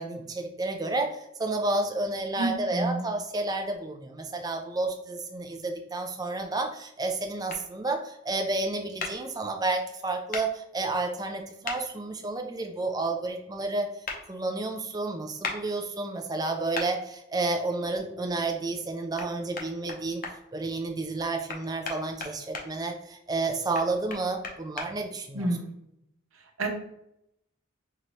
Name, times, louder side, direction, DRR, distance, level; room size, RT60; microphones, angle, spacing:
voice 1, 0.0-13.9 14.3-20.2 20.5-25.5, right 2 dB, 20° right, 5 dB, 0.5 m, -31 dB
voice 2, 2.4-3.0 25.3-25.7 26.6-26.7, right 2 dB, 75° right, 2 dB, 0.9 m, -29 dB
sound 1, 7.5-7.6 9.0-9.1 10.3-10.4 11.6-11.8 14.0-14.2 15.4-15.6 16.7-16.9 19.2-19.3 19.5-20.3 21.5-22.7 23.7-24.9, left 4 dB, 40° left, 0.7 m, -34 dB
5.6 x 2.6 x 3.1 m, 0.81 s
head